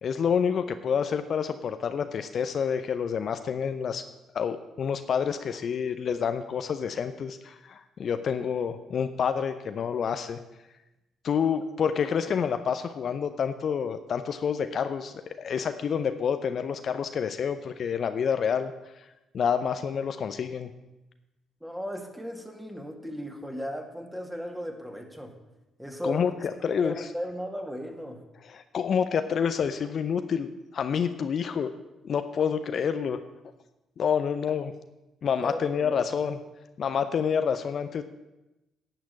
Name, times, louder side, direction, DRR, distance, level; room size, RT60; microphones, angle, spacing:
voice 1, 0.0-4.0 4.3-10.4 11.2-18.7 19.3-20.7 26.0-26.3 26.6-27.1 28.5-31.7 32.0-33.2 34.0-34.7 35.2-36.4 36.8-38.0, left 7 dB, 55° left, 9 dB, 0.6 m, -28 dB
voice 2, 21.6-25.3 25.8-28.2 35.4-36.1, equal, 5° right, 3 dB, 2.2 m, -36 dB
11.0 x 6.0 x 8.4 m, 1.0 s
hypercardioid pair, 45°, 0 cm